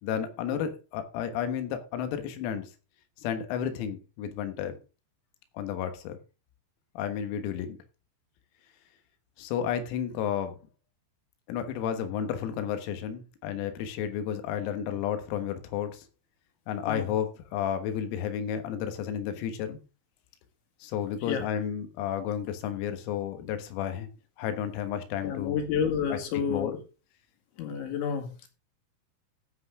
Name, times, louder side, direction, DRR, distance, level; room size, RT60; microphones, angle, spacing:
voice 1, 0.0-2.7 3.2-4.8 5.6-6.2 7.0-7.8 9.4-10.6 11.5-16.1 16.7-19.8 20.8-24.1 24.4-25.6 26.1-26.2 26.5-26.7, left 9 dB, 90° left, 8 dB, 4.2 m, -32 dB
voice 2, 25.2-26.8 27.6-28.5, left 7 dB, 65° left, 5 dB, 4.2 m, -30 dB
14.5 x 7.9 x 3.7 m, 0.32 s
omnidirectional pair, 6.0 m